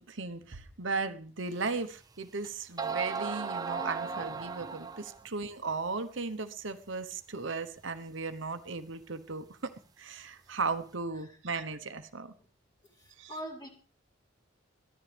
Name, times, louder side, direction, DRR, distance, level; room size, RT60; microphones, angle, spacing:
voice 1, 0.0-12.3 13.2-13.3, right 4 dB, 70° right, 8 dB, 1.1 m, -36 dB
sound 1, 1.7-1.8 2.4-2.5 2.8-5.2, right 5 dB, 20° right, 0.6 m, -36 dB
voice 2, 13.0-13.7, equal, 20° left, 0 dB, 5.4 m, -42 dB
21.5 x 14.5 x 3.5 m, 0.38 s
head